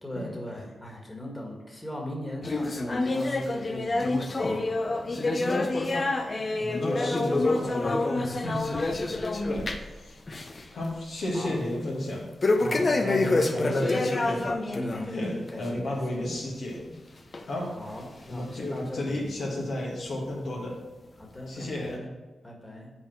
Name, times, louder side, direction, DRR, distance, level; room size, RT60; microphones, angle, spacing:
voice 1, 0.0-5.1 8.1-9.5 11.3-11.6 12.4-13.8 14.7-16.2 17.7-19.3 21.2-22.1 22.4-22.9, equal, 20° left, 0 dB, 1.9 m, -39 dB
sound 1, 2.4-10.0 10.3-10.6 11.0-11.1 12.4-15.1 15.5-15.7 16.4-16.5 17.3-17.4 18.2-18.3, left 2 dB, 45° left, 0.7 m, -27 dB
voice 2, 6.6-8.0 8.4-8.6 9.5-9.7 10.0-10.2 10.7-12.3 12.6-14.5 15.1-16.9 17.5-17.7 18.3-20.8 21.5-22.0, left 1 dB, 75° left, -3 dB, 1.7 m, -33 dB
5.8 x 4.3 x 6.4 m, 1.2 s
cardioid pair, 55°, 0 cm